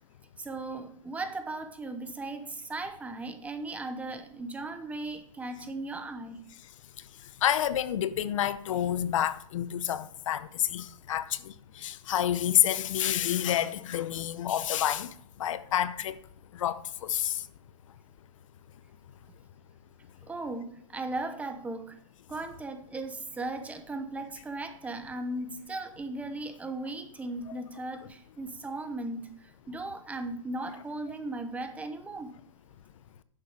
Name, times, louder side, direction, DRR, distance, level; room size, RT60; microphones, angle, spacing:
voice 1, 0.4-6.5 20.3-22.0 22.3-32.4, right 2 dB, 10° right, 0.8 m, -37 dB
voice 2, 7.4-15.1 15.4-16.2 16.5-17.4, left 11 dB, 70° left, 0.7 m, -28 dB
11.0 x 7.4 x 4.8 m
hypercardioid pair, 150°, 17 cm